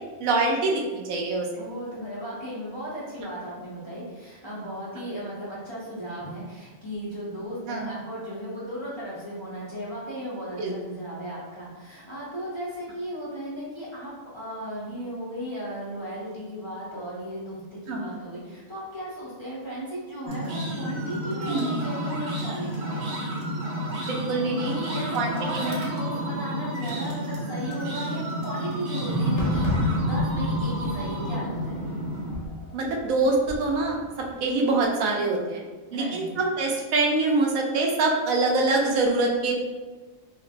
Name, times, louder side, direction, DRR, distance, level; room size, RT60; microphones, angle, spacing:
voice 1, 0.2-1.5 7.7-7.9 10.6-10.7 17.9-18.1 21.5-21.8 24.0-24.8 25.1-25.7 32.7-35.6 35.9-39.5, right 3 dB, 85° right, 0 dB, 1.0 m, -25 dB
voice 2, 1.6-23.0 24.7-31.9 35.9-36.3, equal, 30° left, -9 dB, 0.6 m, -36 dB
sound 1, 20.3-32.3, equal, 60° right, 0.8 m, -29 dB
Fireworks, 29.4-34.4, left 1 dB, 60° left, 1.1 m, -37 dB
3.1 x 2.9 x 2.5 m, 1.3 s
omnidirectional pair, 1.4 m